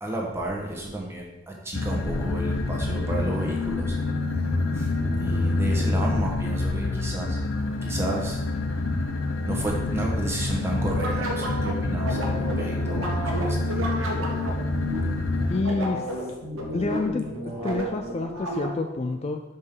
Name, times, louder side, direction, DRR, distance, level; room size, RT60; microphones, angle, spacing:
voice 1, 0.0-4.0 4.7-4.9 5.1-7.4 7.8-8.4 9.4-13.9, right 1 dB, 15° right, -2 dB, 1.3 m, -32 dB
sound 1, 1.7-15.6, left 2 dB, 80° left, 0.7 m, -27 dB
sound 2, 10.9-19.0, right 1 dB, 85° right, 1.4 m, -32 dB
voice 2, 15.5-16.1 16.7-17.3 17.6-19.4, left 3 dB, 30° left, 6 dB, 0.3 m, -28 dB
5.5 x 5.3 x 6.0 m, 1.1 s
head